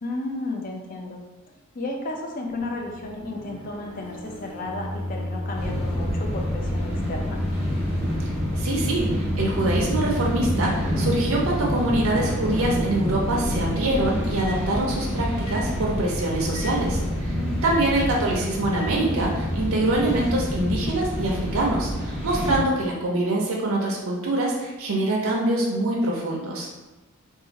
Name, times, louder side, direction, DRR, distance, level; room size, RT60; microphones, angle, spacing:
voice 1, 0.0-1.2 1.7-7.4 17.3-17.8, left 2 dB, 40° left, 1 dB, 0.4 m, -33 dB
Microwave oven, 2.5-15.0 15.5-15.6 16.5-16.7 17.6-17.8 18.7-18.9, left 1 dB, 75° left, 0.8 m, -33 dB
sound 1, 5.5-22.6, equal, 5° right, 0.7 m, -28 dB
voice 2, 8.5-17.3 17.6-26.7, right 2 dB, 65° right, -2 dB, 0.5 m, -24 dB
2.5 x 2.5 x 3.9 m, 1.1 s
head